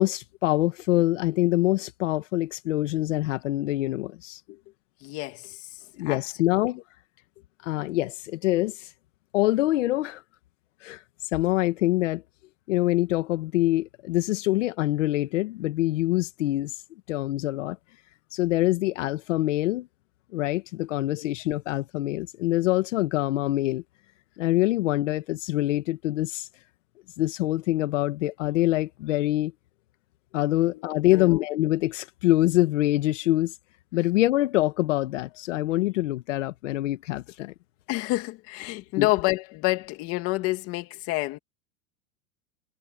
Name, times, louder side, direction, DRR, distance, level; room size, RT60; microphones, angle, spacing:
voice 1, 0.0-4.4 6.0-6.8 7.6-8.9 9.3-10.2 10.8-11.0 11.3-12.2 12.7-16.8 17.1-17.8 18.3-19.9 20.3-23.8 24.4-26.5 27.2-29.5 30.3-33.5 33.9-37.5 39.0-39.1, left 16 dB, 60° left, 1.8 m, -25 dB
voice 2, 5.0-5.7 6.0-6.2 6.5-6.6 21.2-21.3 30.5-31.4 37.9-41.4, left 20 dB, 35° left, 2.1 m, -29 dB
supercardioid pair, 155°, 41 cm